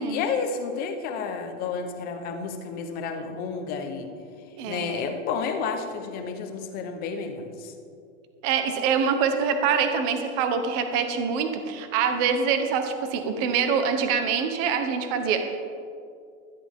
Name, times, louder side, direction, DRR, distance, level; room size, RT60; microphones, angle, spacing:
voice 1, 0.0-4.1 4.7-7.7, left 5 dB, 25° left, 6 dB, 0.9 m, -31 dB
voice 2, 4.6-5.0 8.4-15.7, right 6 dB, 35° right, 7 dB, 1.1 m, -25 dB
16.0 x 13.5 x 3.7 m, 2.4 s
supercardioid pair, 180°, 38 cm